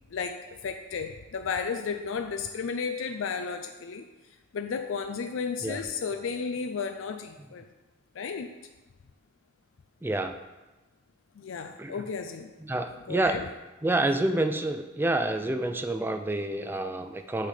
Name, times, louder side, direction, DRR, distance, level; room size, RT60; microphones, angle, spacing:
voice 1, 0.1-4.1 4.5-7.7 8.1-8.5 11.4-12.5 13.1-13.5, left 5 dB, 85° left, 7 dB, 0.4 m, -33 dB
voice 2, 10.0-10.4 11.8-12.0 12.6-13.4 13.8-17.5, right 2 dB, 10° right, 7 dB, 0.3 m, -28 dB
6.5 x 5.7 x 4.9 m, 1.1 s
head